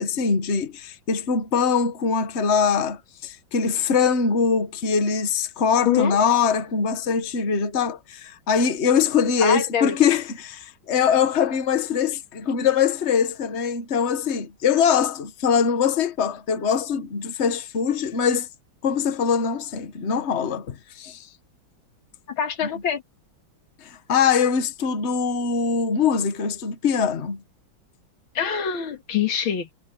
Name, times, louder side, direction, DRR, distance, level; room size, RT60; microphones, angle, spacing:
voice 1, 0.0-18.5 18.8-21.3 23.8-27.4, left 6 dB, 40° left, 1.5 m, -22 dB
voice 2, 5.9-6.2 9.4-10.0 22.3-23.0 28.3-29.7, left 8 dB, 90° left, 2.5 m, -24 dB
omnidirectional pair, 2.2 m